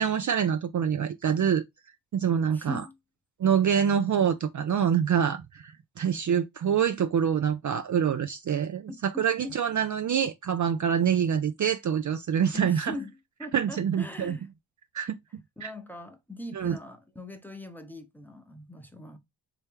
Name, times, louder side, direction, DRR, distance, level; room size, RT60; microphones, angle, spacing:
voice 1, 0.0-1.6 2.1-2.8 3.4-13.0 13.5-14.4 14.9-15.2 15.6-15.7 16.5-16.8, right 8 dB, 45° right, 0.5 m, -26 dB
voice 2, 2.5-3.0 8.9-9.5 12.5-13.1 13.4-14.5 15.6-19.2, left 1 dB, 5° left, 0.7 m, -41 dB
3.2 x 2.9 x 3.5 m
cardioid pair, 65°, 43 cm